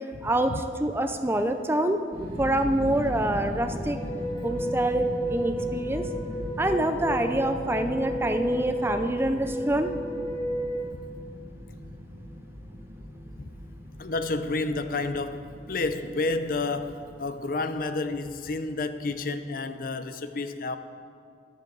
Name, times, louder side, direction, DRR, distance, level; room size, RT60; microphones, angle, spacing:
voice 1, 0.2-2.0 2.4-4.0 4.4-6.1 6.6-9.9, right 1 dB, 15° right, 7 dB, 0.5 m, -26 dB
sound 1, 2.1-18.0, equal, 30° right, 2.7 m, -39 dB
sound 2, 4.0-10.8, right 1 dB, 35° left, 1.8 m, -32 dB
voice 2, 14.0-20.8, left 3 dB, 50° left, 10 dB, 0.6 m, -30 dB
14.0 x 12.0 x 3.9 m, 2.3 s
head